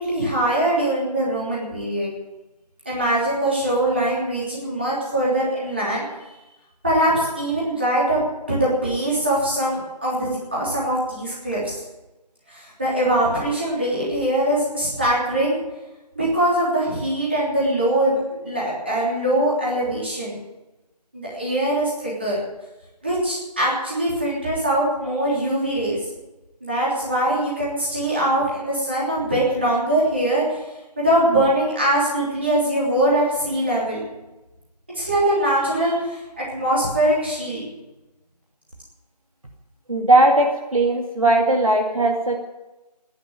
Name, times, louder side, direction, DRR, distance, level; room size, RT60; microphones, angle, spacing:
voice 1, 0.0-2.1 2.8-6.0 6.8-11.8 12.5-15.6 16.1-20.4 21.1-22.4 23.0-26.0 26.6-30.4 31.0-34.0 34.9-37.6, right 1 dB, 15° right, -7 dB, 3.4 m, -22 dB
voice 2, 39.9-42.4, right 2 dB, 55° right, 2 dB, 2.2 m, -18 dB
14.0 x 11.0 x 9.2 m, 1.0 s
figure-of-eight pair, 180°, 21 cm